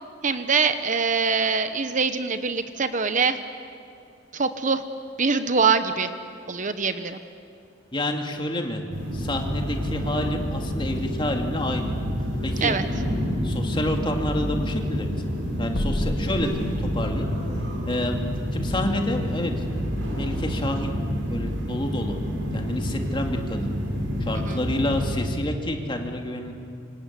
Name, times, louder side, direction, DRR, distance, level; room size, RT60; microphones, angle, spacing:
voice 1, 0.2-3.4 4.3-4.8 5.2-6.1 6.5-7.2 12.6-12.8 24.3-24.6, right 5 dB, 45° right, 9 dB, 1.1 m, -23 dB
voice 2, 7.9-8.8 9.1-12.0 12.4-12.8 13.4-15.1 15.6-16.5 16.8-17.3 17.9-18.2 18.5-19.5 20.1-21.0 21.3-22.2 22.5-23.7 24.2-26.5, left 1 dB, 25° left, 3 dB, 2.7 m, -28 dB
sound 1, 8.9-25.2, equal, 75° right, 6.7 m, -28 dB
sound 2, 15.7-17.3, left 1 dB, 90° left, 1.4 m, -31 dB
26.5 x 26.0 x 8.4 m, 2.5 s
head